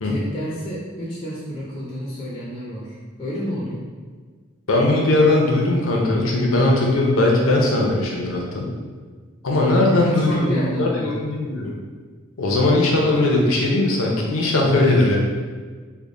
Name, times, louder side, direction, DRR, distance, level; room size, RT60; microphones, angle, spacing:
voice 1, 0.0-3.9 9.9-11.2, equal, 20° left, -6 dB, 0.5 m, -30 dB
voice 2, 4.7-8.7 9.4-11.7 12.4-15.2, left 2 dB, 85° left, -1 dB, 0.7 m, -19 dB
3.5 x 2.2 x 3.7 m, 1.5 s
head